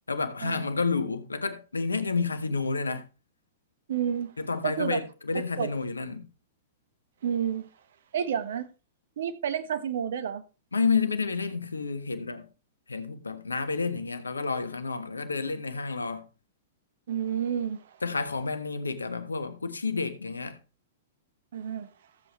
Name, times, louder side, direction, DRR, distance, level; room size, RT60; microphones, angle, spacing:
voice 1, 0.1-3.1 4.4-6.3 10.7-12.5 12.9-16.3 18.0-20.6, left 4 dB, 85° left, 1.1 m, -30 dB
voice 2, 3.9-4.3 4.6-5.0 5.6-5.7 7.2-7.7 8.1-8.7 9.2-10.4 17.1-18.0 21.5-21.9, right 8 dB, 60° right, 1.2 m, -30 dB
14.5 x 8.0 x 3.2 m
figure-of-eight pair, 105°, 0 cm